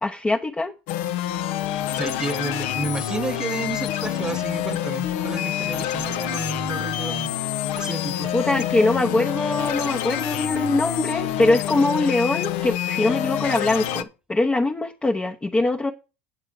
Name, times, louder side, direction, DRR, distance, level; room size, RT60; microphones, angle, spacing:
voice 1, 0.0-0.7 8.3-15.9, left 2 dB, 15° left, 1.0 m, -22 dB
sound 1, 0.9-14.0, left 11 dB, 65° left, 0.8 m, -27 dB
voice 2, 2.0-7.3 7.7-8.3, right 2 dB, 15° right, 0.7 m, -31 dB
9.1 x 7.3 x 4.8 m
hypercardioid pair, 90°, 6 cm